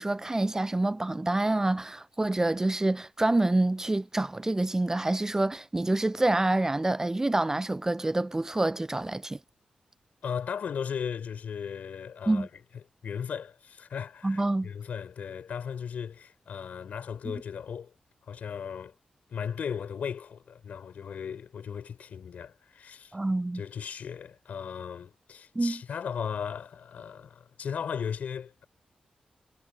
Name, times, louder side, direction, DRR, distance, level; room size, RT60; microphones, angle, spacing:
voice 1, 0.0-9.4 12.3-12.5 14.2-14.7 17.3-17.4 23.1-23.6 25.6-25.8, right 2 dB, 20° right, 0.4 m, -27 dB
voice 2, 10.2-12.5 13.0-17.9 18.3-18.9 19.3-23.1 23.5-28.7, left 7 dB, 85° left, 4.5 m, -36 dB
cardioid pair, 65°, 3 cm